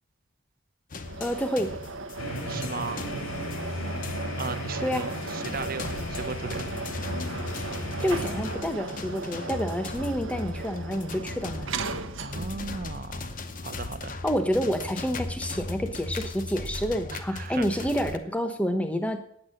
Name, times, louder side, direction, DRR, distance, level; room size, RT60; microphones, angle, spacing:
sound 1, 0.9-18.2, left 3 dB, 40° left, 0.8 m, -38 dB
sound 2, 1.0-12.7, right 4 dB, 65° right, 1.0 m, -37 dB
voice 1, 1.2-1.8 4.8-5.1 8.0-11.8 14.2-19.2, equal, 5° left, 7 dB, 1.0 m, -28 dB
sound 3, 2.2-8.6, left 1 dB, 85° left, 2.5 m, -35 dB
voice 2, 2.5-3.1 4.4-6.6 12.2-13.3 13.6-14.1 17.1-17.9, right 4 dB, 45° right, 9 dB, 0.9 m, -37 dB
9.5 x 8.3 x 7.7 m, 0.68 s
head